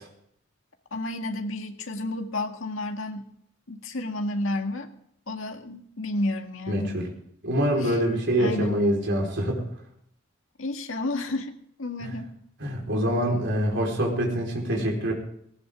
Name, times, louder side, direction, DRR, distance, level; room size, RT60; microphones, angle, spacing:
voice 1, 0.9-3.3 3.7-4.9 5.3-7.0 7.8-8.0 8.4-8.8 10.6-12.4, left 2 dB, 75° left, 4 dB, 1.9 m, -31 dB
voice 2, 6.7-7.0 7.4-9.6 12.0-12.1 12.6-15.1, equal, 60° right, 0 dB, 4.6 m, -25 dB
19.0 x 18.0 x 3.7 m, 0.70 s
head